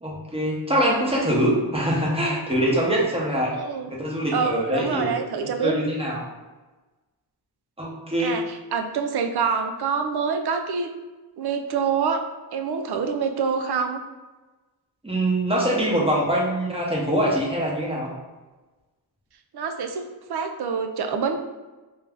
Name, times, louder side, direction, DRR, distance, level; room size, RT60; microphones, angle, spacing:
voice 1, 0.0-3.5 3.9-5.1 5.3-6.3 7.8-8.4 15.0-18.1, right 1 dB, 15° right, -4 dB, 0.8 m, -24 dB
voice 2, 3.5-3.9 4.3-5.7 8.2-8.4 8.7-10.9 11.4-12.3 12.5-14.0 19.5-21.4, right 6 dB, 70° right, 6 dB, 0.5 m, -26 dB
3.5 x 2.6 x 3.3 m, 1.2 s
wide cardioid pair, 165°, 40 cm